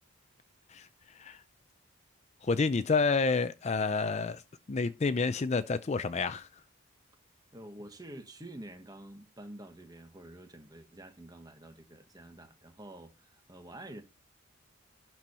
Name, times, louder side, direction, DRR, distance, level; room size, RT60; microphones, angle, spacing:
voice 1, 0.7-1.4 2.4-4.4 4.7-6.6, left 4 dB, 30° left, 0.4 m, -29 dB
voice 2, 7.5-14.0, right 1 dB, 15° right, 1.2 m, -48 dB
11.5 x 4.5 x 5.5 m
head